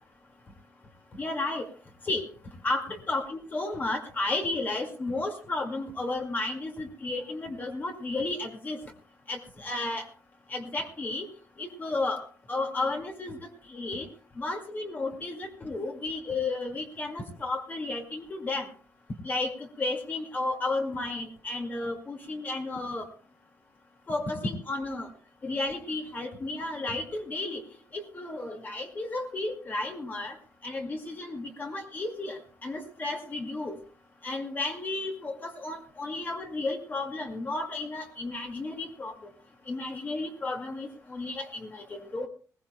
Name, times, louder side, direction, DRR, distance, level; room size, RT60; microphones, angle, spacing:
voice 1, 1.2-1.7 2.1-2.2 2.6-8.8 9.3-10.0 10.5-11.3 11.6-12.2 12.5-13.4 13.7-14.1 14.4-18.7 19.2-23.1 24.1-25.1 25.4-27.6 27.9-30.4 30.6-33.8 34.2-39.1 39.7-42.3, left 2 dB, 30° left, 3 dB, 2.0 m, -33 dB
20.5 x 17.5 x 2.2 m, 0.42 s
cardioid pair, 125°, 7 cm